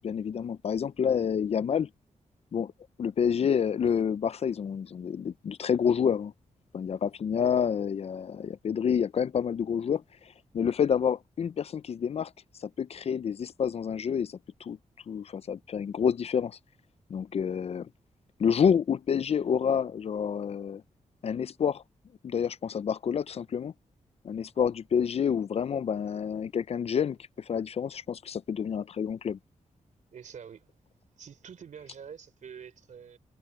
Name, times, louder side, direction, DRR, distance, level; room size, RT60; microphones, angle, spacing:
voice 1, 0.0-1.9 2.5-2.7 3.0-6.3 6.7-10.0 10.5-12.3 12.6-14.8 15.1-16.6 17.1-17.9 18.4-20.8 21.2-21.8 22.2-23.7 24.2-27.2 27.5-29.4, left 7 dB, 50° left, 0.4 m, -28 dB
voice 2, 30.1-30.7 31.2-33.2, right 7 dB, 70° right, 3.3 m, -46 dB
wide cardioid pair, 130°, 13 cm